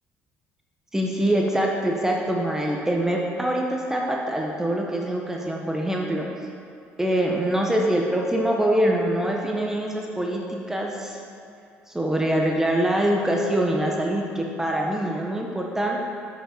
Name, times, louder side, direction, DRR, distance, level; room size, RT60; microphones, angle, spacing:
voice 1, 0.9-6.3 7.0-11.2 11.9-16.0, right 1 dB, 10° right, -1 dB, 0.8 m, -24 dB
7.4 x 5.2 x 5.1 m, 2.5 s
cardioid pair, 90°, 5 cm